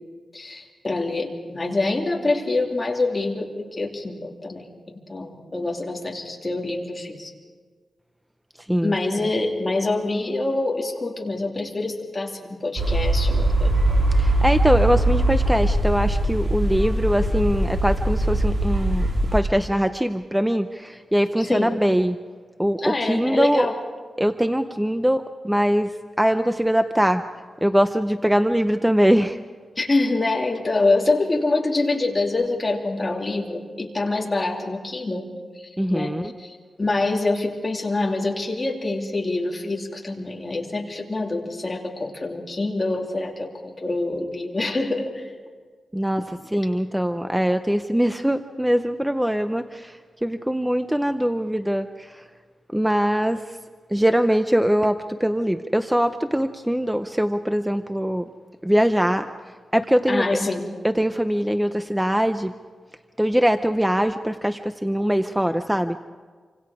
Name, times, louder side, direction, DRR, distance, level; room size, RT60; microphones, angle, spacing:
voice 1, 0.3-7.3 8.8-13.7 21.4-21.8 22.8-23.8 29.8-45.3 60.1-60.7, left 2 dB, 25° left, -1 dB, 2.8 m, -26 dB
voice 2, 8.6-9.0 14.2-22.2 22.6-23.7 24.2-25.9 26.2-27.2 27.6-29.4 35.8-36.2 45.9-46.2 46.5-52.2 52.7-53.6 53.9-58.3 58.6-59.3 59.7-60.2 60.8-62.5 63.2-66.0, equal, 5° right, 8 dB, 0.5 m, -22 dB
sound 1, 12.8-19.4, right 1 dB, 40° right, 3.1 m, -21 dB
28.0 x 25.5 x 4.9 m, 1.5 s
wide cardioid pair, 165°, 0 cm